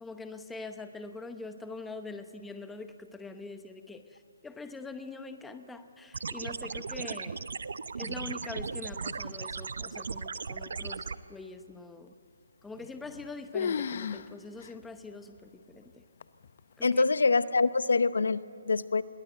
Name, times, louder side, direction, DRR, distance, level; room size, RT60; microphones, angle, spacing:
voice 1, 0.0-7.5 8.0-12.1 12.6-16.0 16.8-17.0, left 3 dB, 5° left, 8 dB, 0.9 m, -44 dB
sound 1, 6.1-11.1, right 5 dB, 70° right, 0.8 m, -37 dB
sound 2, 12.8-13.3 13.5-14.3 14.6-14.7 15.4-15.5 16.2-16.6, left 6 dB, 50° left, 0.8 m, -33 dB
voice 2, 16.8-19.0, left 4 dB, 80° left, 15 dB, 0.8 m, -25 dB
21.5 x 19.0 x 8.0 m, 2.5 s
hypercardioid pair, 155°, 0 cm